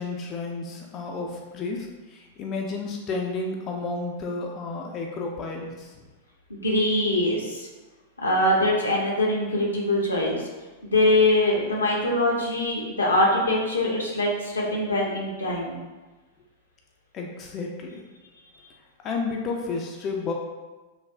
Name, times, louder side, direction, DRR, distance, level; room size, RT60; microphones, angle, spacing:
voice 1, 0.0-6.0 17.1-18.0 19.0-20.3, left 3 dB, 35° left, 1 dB, 0.3 m, -32 dB
voice 2, 6.5-7.7 8.2-10.4 10.8-15.8, left 1 dB, 85° left, -3 dB, 0.6 m, -23 dB
3.2 x 2.3 x 2.2 m, 1.2 s
figure-of-eight pair, 95°, 0 cm